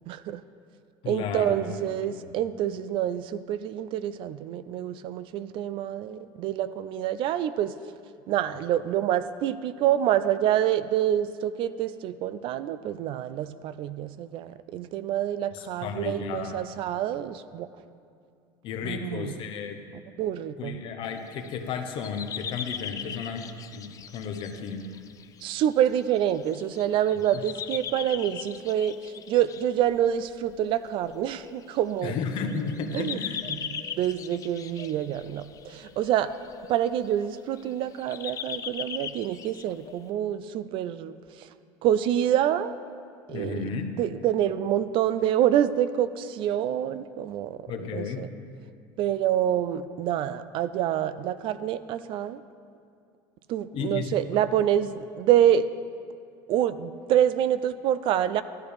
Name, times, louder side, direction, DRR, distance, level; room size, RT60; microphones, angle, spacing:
voice 1, 0.1-0.4 1.1-7.7 8.3-17.7 18.8-19.3 20.2-20.8 25.4-32.2 32.9-33.2 33.5-36.3 36.7-41.5 41.8-42.7 43.3-43.7 44.0-48.3 49.0-52.4 53.5-55.7 56.5-58.4, right 11 dB, 50° right, 14 dB, 0.3 m, -27 dB
voice 2, 1.0-2.3 15.5-16.7 18.6-19.8 20.6-24.9 27.3-27.4 32.0-33.4 43.3-43.9 47.7-48.3 53.7-54.2, left 5 dB, 55° left, 6 dB, 0.9 m, -33 dB
sound 1, 21.0-21.6 22.0-40.0, left 8 dB, 30° left, 0.4 m, -40 dB
13.0 x 8.3 x 3.4 m, 2.4 s
supercardioid pair, 120°, 11 cm